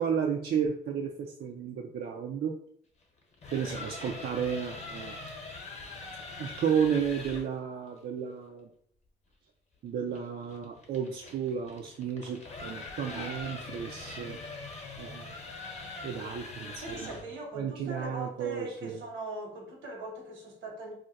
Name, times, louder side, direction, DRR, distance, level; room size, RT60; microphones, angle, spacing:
voice 1, 0.0-2.5 3.5-5.2 6.4-8.7 9.8-14.4 15.0-15.4 16.0-17.1 17.6-19.0, right 7 dB, 55° right, 0.4 m, -32 dB
sound 1, 3.2-7.5 10.1-17.3, left 3 dB, 35° left, 0.9 m, -43 dB
voice 2, 3.6-3.9 13.1-13.4 16.8-20.9, right 2 dB, 75° right, 1.2 m, -41 dB
2.5 x 2.1 x 4.0 m
cardioid pair, 90°, 20 cm